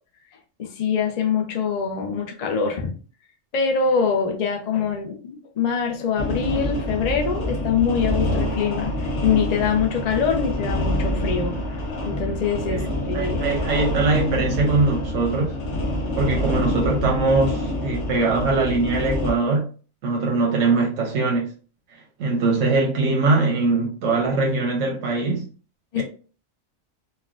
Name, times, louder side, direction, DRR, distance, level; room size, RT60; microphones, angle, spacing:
voice 1, 0.6-2.9 3.5-11.5 12.0-13.4 15.7-16.0 25.9-26.0, left 6 dB, 50° left, 0.5 m, -24 dB
sound 1, 6.2-19.3, left 1 dB, 65° left, 1.1 m, -26 dB
voice 2, 13.1-15.5 16.2-19.7 20.0-21.5 22.2-25.5 26.0-26.1, right 3 dB, 90° right, 1.1 m, -22 dB
4.3 x 2.2 x 2.4 m
omnidirectional pair, 1.3 m